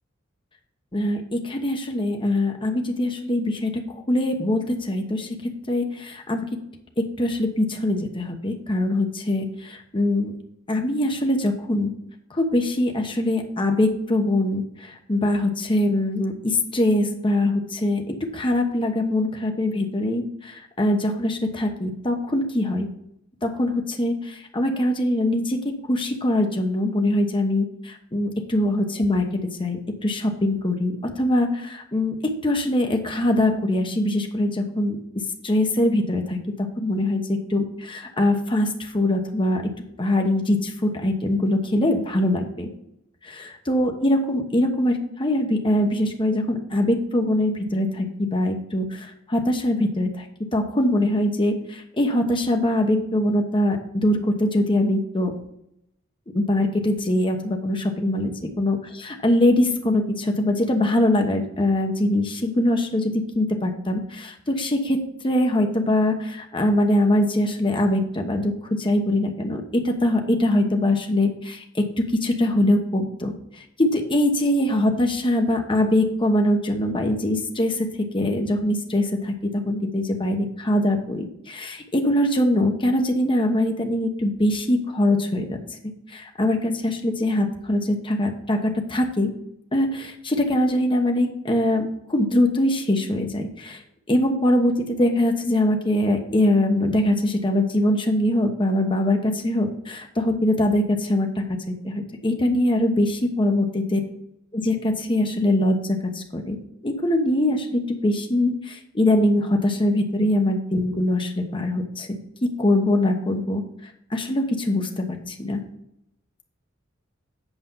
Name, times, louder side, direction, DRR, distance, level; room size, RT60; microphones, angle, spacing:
voice 1, 0.9-3.8 4.1-6.5 7.0-9.4 9.7-10.3 10.7-11.9 12.3-22.9 23.4-25.6 25.9-29.2 29.6-32.2 32.4-36.4 36.8-39.6 40.0-42.7 43.3-55.3 56.3-58.3 58.6-73.3 73.8-85.6 85.8-89.3 89.7-93.8 94.1-103.1 103.4-104.0 104.5-106.6 106.8-112.2 112.6-113.6 114.1-115.6, left 1 dB, 25° left, 3 dB, 1.1 m, -23 dB
8.1 x 5.2 x 5.6 m, 0.79 s
head